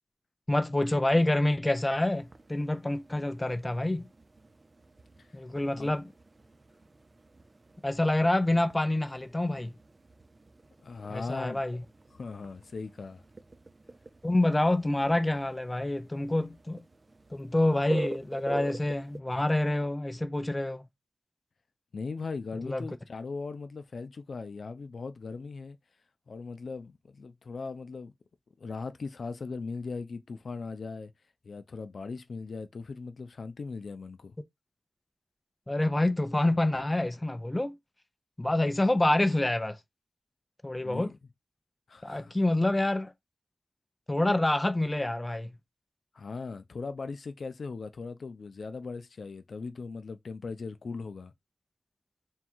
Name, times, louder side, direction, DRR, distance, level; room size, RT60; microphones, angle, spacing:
voice 1, 0.5-4.1 5.3-6.1 7.8-9.8 11.1-11.8 14.2-16.8 17.3-20.9 22.6-22.9 35.7-37.8 38.4-39.8 40.6-41.1 42.0-43.1 44.1-45.6, left 1 dB, 20° left, 0.5 m, -27 dB
sound 1, 1.9-19.2, right 2 dB, 45° right, 0.5 m, -46 dB
voice 2, 10.8-11.6 12.1-13.2 21.9-25.8 26.3-28.1 28.6-31.1 31.4-34.4 40.8-41.2 41.9-42.3 46.1-51.3, left 4 dB, 85° left, 0.4 m, -39 dB
3.6 x 2.3 x 4.3 m
wide cardioid pair, 75°, 0 cm